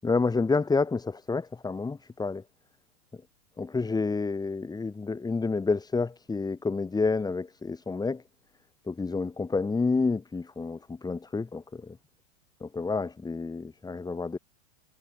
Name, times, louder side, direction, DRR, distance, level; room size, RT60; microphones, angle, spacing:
voice 1, 0.0-2.4 3.6-8.2 8.9-11.6 12.6-14.4, left 4 dB, 10° left, 7.3 m, -29 dB
hypercardioid pair, 125°, 35 cm